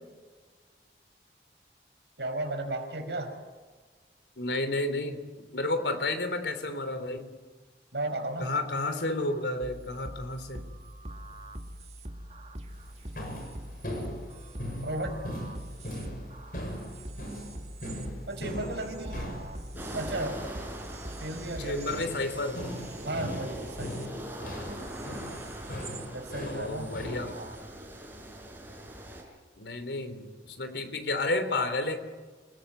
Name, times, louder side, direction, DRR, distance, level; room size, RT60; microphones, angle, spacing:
voice 1, 2.2-3.3 7.9-8.5 14.8-15.2 18.3-19.4 19.9-20.5 21.2-22.0 23.0-24.0 26.1-26.9 27.3-27.5, right 1 dB, 80° right, 4 dB, 5.7 m, -34 dB
voice 2, 4.4-5.2 5.5-7.3 8.4-10.7 21.6-22.7 26.4-27.3 29.6-32.0, left 2 dB, 85° left, 9 dB, 3.5 m, -31 dB
sound 1, 9.6-26.1 26.3-27.6, right 1 dB, 35° right, 2.3 m, -44 dB
sound 2, 12.7-27.3, equal, 50° left, 6.5 m, -40 dB
sound 3, 19.7-29.2, right 1 dB, 10° right, 6.2 m, -42 dB
28.0 x 21.0 x 9.3 m, 1.4 s
head